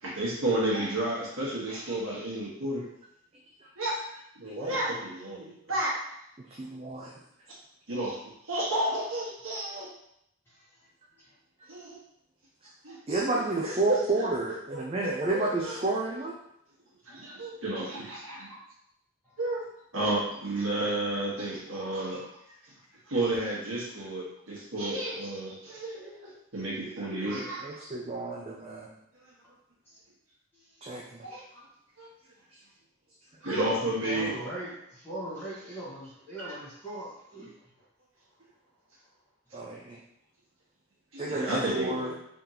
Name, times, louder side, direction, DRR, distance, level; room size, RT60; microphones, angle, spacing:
voice 1, 0.0-2.8 3.8-3.9 4.4-6.0 7.9-8.2 8.5-9.9 11.7-12.0 12.8-13.0 14.2-14.3 14.7-15.7 17.1-18.5 19.4-19.6 19.9-22.2 23.1-27.8 31.2-31.4 32.0-32.1 33.4-34.3 41.1-42.1, right 1 dB, 70° right, -6 dB, 1.4 m, -31 dB
voice 2, 6.5-7.1 13.1-16.4 27.2-28.9 30.8-31.3 39.5-40.0 41.2-42.1, right 2 dB, 30° right, -3 dB, 0.4 m, -31 dB
voice 3, 10.4-10.9 11.1-11.4 17.1-17.2 19.2-19.4 29.8-30.0 30.5-31.0 33.6-37.9 38.3-38.4, right 1 dB, 10° left, -9 dB, 1.5 m, -41 dB
3.7 x 3.5 x 2.9 m, 0.76 s
head